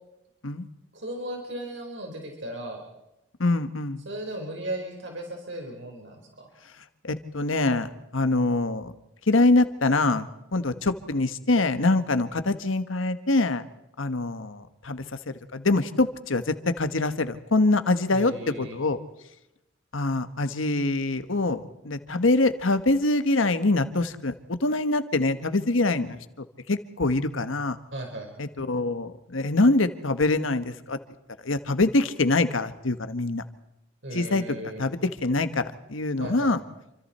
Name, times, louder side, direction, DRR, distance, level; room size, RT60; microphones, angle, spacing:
voice 1, 0.9-2.8 4.0-6.5 18.1-18.8 27.9-28.3 34.0-34.8 36.2-36.5, right 1 dB, 70° right, 2 dB, 4.5 m, -36 dB
voice 2, 3.4-4.0 7.0-8.9 9.3-13.6 14.0-19.0 19.9-27.8 28.4-31.0 31.4-33.4 34.1-36.6, left 2 dB, 90° left, 10 dB, 1.4 m, -24 dB
28.5 x 26.0 x 4.3 m, 0.89 s
head